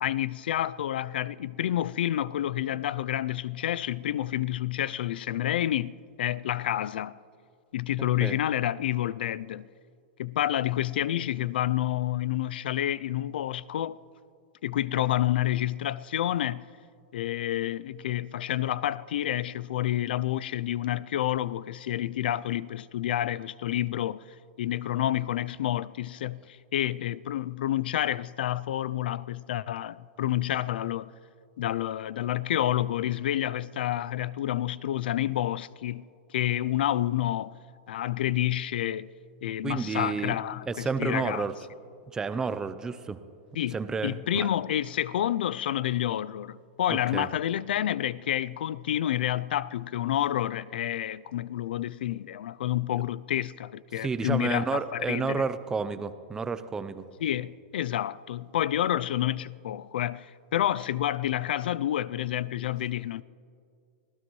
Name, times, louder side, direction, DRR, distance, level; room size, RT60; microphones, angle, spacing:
voice 1, 0.0-7.2 7.7-9.7 10.2-14.0 14.6-16.7 17.1-24.2 24.6-31.1 31.6-36.0 36.3-37.5 37.9-39.1 39.4-41.5 43.6-55.4 57.2-63.2, left 12 dB, 80° left, 0.4 m, -29 dB
voice 2, 39.6-40.4 40.6-41.5 42.1-43.2 43.7-44.5 46.9-47.3 54.0-57.1, right 5 dB, 10° right, 0.6 m, -31 dB
25.5 x 16.5 x 3.1 m
supercardioid pair, 150°, 5 cm